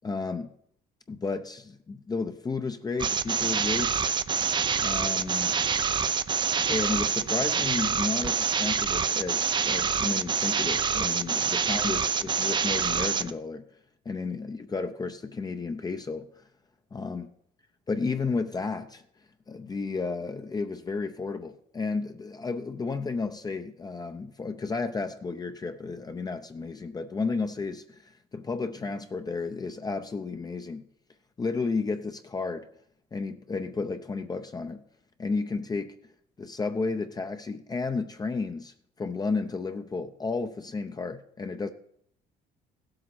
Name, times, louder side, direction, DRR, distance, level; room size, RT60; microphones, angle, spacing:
voice 1, 0.0-0.5 1.1-4.1 4.8-5.6 6.7-13.6 14.1-16.4 16.9-17.3 17.9-19.0 19.5-30.8 31.4-32.7 33.1-34.8 35.2-35.9 36.4-41.7, left 4 dB, 25° left, 7 dB, 0.6 m, -32 dB
sound 1, 3.0-13.3, right 6 dB, 25° right, 0.5 m, -26 dB
16.0 x 7.8 x 4.2 m, 0.68 s
cardioid pair, 110°, 17 cm